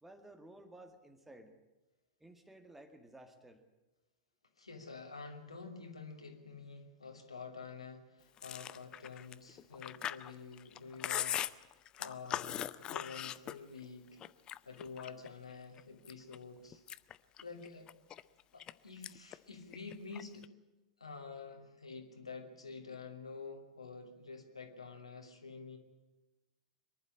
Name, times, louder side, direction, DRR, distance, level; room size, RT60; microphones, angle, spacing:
voice 1, 0.0-1.5 2.2-3.6, right 1 dB, 5° right, 7 dB, 1.9 m, -55 dB
voice 2, 4.6-11.4 12.0-14.2 14.7-16.8 17.4-17.9 18.5-20.5 21.0-25.8, left 4 dB, 80° left, 3 dB, 2.8 m, -48 dB
Chewing mastication, 8.4-13.9 14.2-15.3 15.8-16.4 16.7-18.7 19.0-19.4 19.6-20.5, left 11 dB, 25° left, 0.6 m, -40 dB
24.0 x 11.5 x 9.9 m, 1.1 s
figure-of-eight pair, 95°, 3 cm